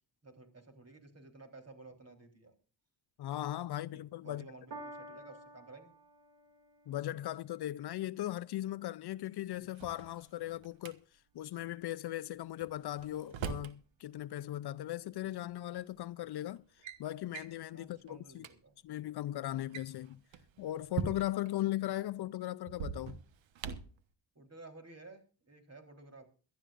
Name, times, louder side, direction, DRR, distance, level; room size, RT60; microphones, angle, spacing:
voice 1, 0.2-2.5 3.9-5.9 9.5-9.7 17.7-18.7 24.4-26.3, right 3 dB, 35° right, 3.8 m, -54 dB
voice 2, 3.2-4.5 6.9-11.0 11.3-18.5 18.8-20.2 20.6-23.2, left 14 dB, 60° left, 0.5 m, -38 dB
Piano, 4.7-11.3 12.1-12.2, right 1 dB, 65° right, 2.5 m, -54 dB
Drawer open or close, 9.6-10.9 12.6-13.8 15.1-15.2 16.0-16.2 16.6-17.0 17.3-17.6 18.1-18.2 18.4-18.5 19.5-21.5 22.7-24.0, right 7 dB, 90° right, 1.2 m, -42 dB
22.5 x 12.5 x 2.5 m
cardioid pair, 80°, 44 cm